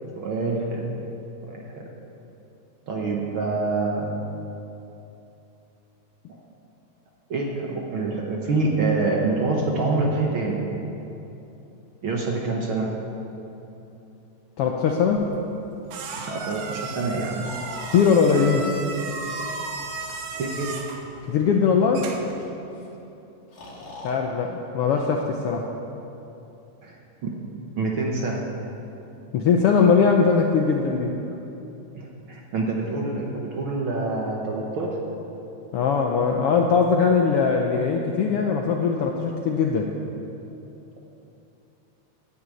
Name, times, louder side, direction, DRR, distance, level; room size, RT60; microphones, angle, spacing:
voice 1, 0.2-0.9 1.5-1.9 2.9-4.3 6.3-6.4 7.3-10.7 12.0-12.9 16.2-17.4 20.3-20.8 26.8-27.4 27.8-28.5 31.9-35.0, right 3 dB, 55° right, -1 dB, 1.6 m, -26 dB
voice 2, 14.6-15.3 17.9-18.7 21.3-22.1 24.0-25.7 29.3-31.1 35.7-39.9, left 5 dB, 75° left, 2 dB, 1.4 m, -20 dB
sound 1, 15.1-22.4, right 4 dB, 75° right, 2.3 m, -36 dB
Breathing, 16.0-16.7 17.4-18.1 19.0-19.9 20.8-21.2 22.4-22.5 22.7-22.9 23.5-24.2, equal, 35° left, 2.1 m, -40 dB
11.0 x 9.5 x 8.4 m, 2.9 s
omnidirectional pair, 3.4 m